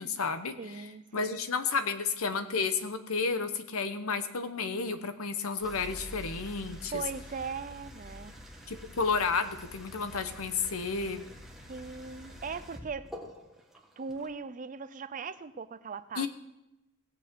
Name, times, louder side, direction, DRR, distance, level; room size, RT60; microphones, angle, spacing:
voice 1, 0.0-0.5 1.1-6.9 8.7-11.2 16.2-16.3, left 5 dB, 75° left, 10 dB, 1.0 m, -31 dB
voice 2, 0.6-1.4 6.9-8.3 11.6-13.3 14.0-16.3, right 5 dB, 40° right, 13 dB, 0.5 m, -39 dB
sound 1, 5.6-14.3, equal, ahead, 1.4 m, -47 dB
17.0 x 8.1 x 4.6 m, 0.91 s
head